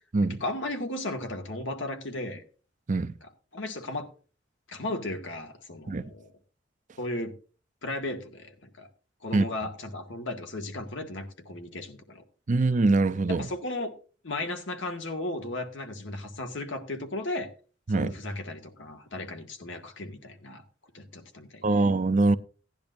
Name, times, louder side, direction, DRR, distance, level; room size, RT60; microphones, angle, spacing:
voice 1, 0.4-2.4 3.5-4.1 4.7-6.3 7.0-7.3 7.8-8.9 9.2-12.2 13.3-13.9 14.2-17.5 17.9-20.6 20.9-21.9, left 2 dB, 70° left, 1.8 m, -35 dB
voice 2, 12.5-13.5 17.9-18.1 21.6-22.4, right 3 dB, 40° right, 0.6 m, -23 dB
16.5 x 10.5 x 2.6 m
head